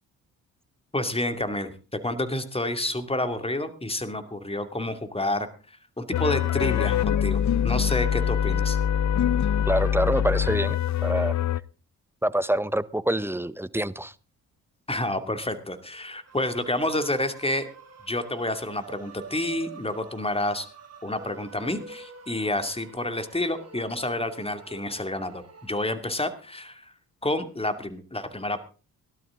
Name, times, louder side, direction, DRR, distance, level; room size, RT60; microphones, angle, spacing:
voice 1, 0.9-5.5 6.0-8.8 14.9-17.6 18.1-20.7 21.0-26.9 27.2-28.6, left 1 dB, 15° left, 9 dB, 2.5 m, -29 dB
sound 1, 6.1-11.6, left 9 dB, 45° left, 0.6 m, -24 dB
voice 2, 9.7-11.4 12.2-14.1, right 1 dB, 5° right, 17 dB, 0.8 m, -26 dB
sound 2, 16.2-25.8, right 4 dB, 40° right, 2.9 m, -47 dB
17.5 x 12.0 x 3.8 m, 0.35 s
supercardioid pair, 50°, 41 cm